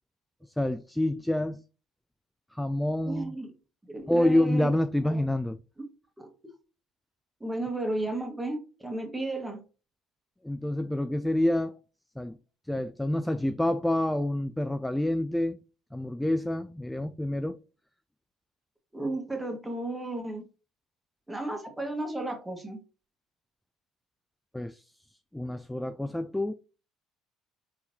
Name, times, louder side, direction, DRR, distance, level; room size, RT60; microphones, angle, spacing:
voice 1, 0.6-1.6 2.5-3.4 4.1-5.6 10.4-11.8 12.2-12.4 12.7-15.6 15.9-17.6 24.5-24.9 25.3-26.5, left 1 dB, 5° left, 0.3 m, -27 dB
voice 2, 3.1-3.5 3.8-4.7 5.0-5.2 5.8-5.9 6.2-6.3 7.4-9.6 18.9-20.4 21.3-22.8, right 2 dB, 10° right, 1.5 m, -34 dB
4.3 x 3.7 x 2.7 m
hypercardioid pair, 60°, 0 cm